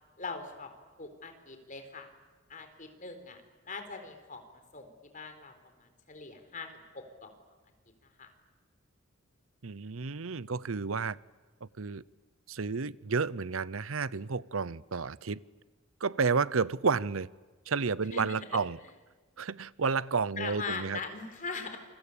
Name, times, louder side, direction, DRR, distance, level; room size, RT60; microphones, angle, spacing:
voice 1, 0.2-0.7 1.0-2.1 2.5-3.4 3.6-4.5 4.7-7.3 8.2-8.3 18.1-18.4 20.4-21.8, left 4 dB, 40° left, 7 dB, 4.1 m, -41 dB
voice 2, 9.6-11.2 11.6-12.0 12.5-15.4 16.0-17.3 17.7-18.8 19.4-21.0, right 5 dB, 80° right, 20 dB, 0.8 m, -31 dB
28.5 x 23.5 x 8.6 m, 1.4 s
head